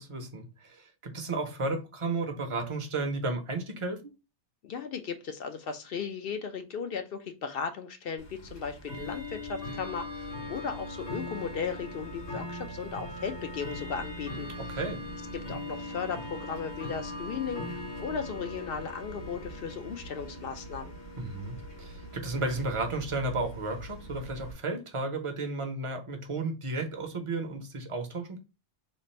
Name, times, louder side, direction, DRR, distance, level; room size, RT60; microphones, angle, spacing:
voice 1, 0.0-4.0 14.7-15.0 21.2-28.4, right 2 dB, 35° right, 0.7 m, -33 dB
voice 2, 4.6-14.5 15.3-20.9, left 6 dB, 65° left, 0.7 m, -36 dB
Bell / Tick-tock, 8.2-24.5, left 1 dB, 85° left, 1.7 m, -40 dB
3.2 x 2.5 x 4.1 m
omnidirectional pair, 1.1 m